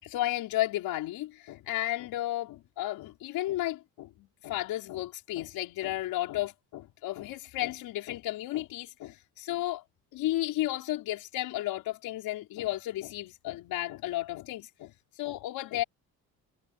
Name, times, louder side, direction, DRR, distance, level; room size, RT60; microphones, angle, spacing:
voice 1, 0.0-9.8 10.1-15.8, left 15 dB, 85° left, 5.2 m, -33 dB
cardioid pair, 150°, 35 cm